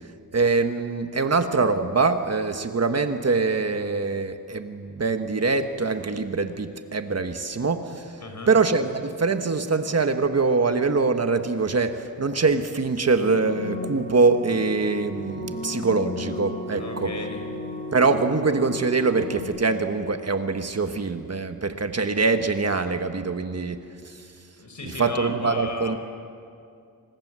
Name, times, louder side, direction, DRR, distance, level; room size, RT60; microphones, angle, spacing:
voice 1, 0.3-8.2 8.5-17.1 17.9-24.2 25.0-26.0, right 4 dB, 40° right, 7 dB, 1.3 m, -24 dB
voice 2, 8.2-8.6 16.8-17.4 24.6-26.0, left 3 dB, 50° left, 4 dB, 4.8 m, -35 dB
sound 1, 13.2-19.4, left 2 dB, 20° left, 3.7 m, -34 dB
28.0 x 25.5 x 7.6 m, 2.5 s
wide cardioid pair, 140°, 37 cm